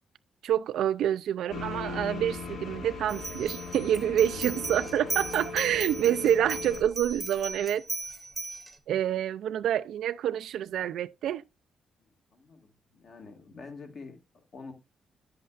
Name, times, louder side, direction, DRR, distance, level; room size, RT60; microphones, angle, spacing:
voice 1, 0.4-7.8 8.9-11.4, right 10 dB, 85° right, 0.4 m, -27 dB
sound 1, 1.5-6.8, left 4 dB, 65° left, 2.3 m, -38 dB
sound 2, 3.1-8.7, right 2 dB, 5° right, 1.0 m, -38 dB
voice 2, 12.0-14.7, left 4 dB, 45° left, 1.8 m, -47 dB
10.5 x 7.8 x 2.4 m
wide cardioid pair, 175°, 0 cm